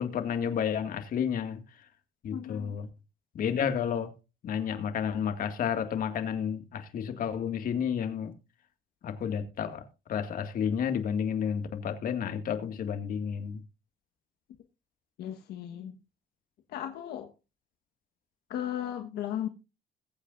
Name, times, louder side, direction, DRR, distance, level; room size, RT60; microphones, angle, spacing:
voice 1, 0.0-1.6 2.2-2.9 3.3-4.1 4.4-8.3 9.0-9.8 10.1-13.6, left 8 dB, 55° left, 2.1 m, -31 dB
voice 2, 2.3-2.8 15.2-15.9 16.7-17.3 18.5-19.5, left 10 dB, 75° left, 1.4 m, -35 dB
21.5 x 8.5 x 2.6 m
cardioid pair, 110°, 17 cm